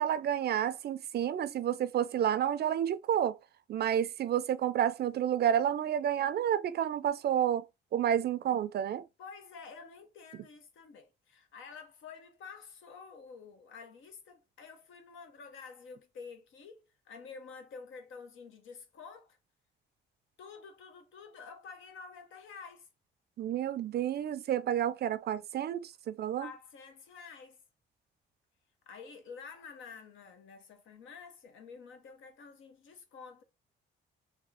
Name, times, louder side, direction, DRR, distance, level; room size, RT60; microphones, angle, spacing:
voice 1, 0.0-3.4 3.7-7.7 7.9-9.0 23.4-26.5, right 10 dB, 55° right, 0.4 m, -30 dB
voice 2, 9.2-19.4 20.4-22.9 26.3-27.6 28.9-33.4, left 5 dB, 80° left, 1.0 m, -49 dB
3.5 x 2.3 x 3.4 m
cardioid pair, 90°, 20 cm